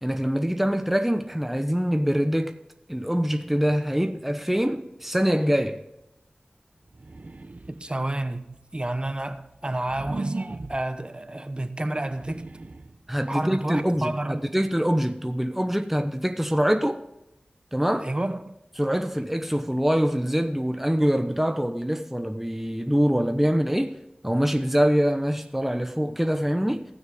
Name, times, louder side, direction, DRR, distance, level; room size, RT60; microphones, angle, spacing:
voice 1, 0.0-2.6 2.9-5.8 13.1-17.0 17.7-18.1 18.8-24.0 24.2-26.9, equal, 5° right, 0.8 m, -24 dB
sound 1, 6.9-8.0 8.6-11.0 11.9-13.0, right 2 dB, 55° right, 0.7 m, -37 dB
voice 2, 7.7-8.5 8.7-12.5 13.3-14.4 18.0-18.4, right 1 dB, 30° right, 1.0 m, -30 dB
18.0 x 6.4 x 3.6 m
wide cardioid pair, 45°, 3 cm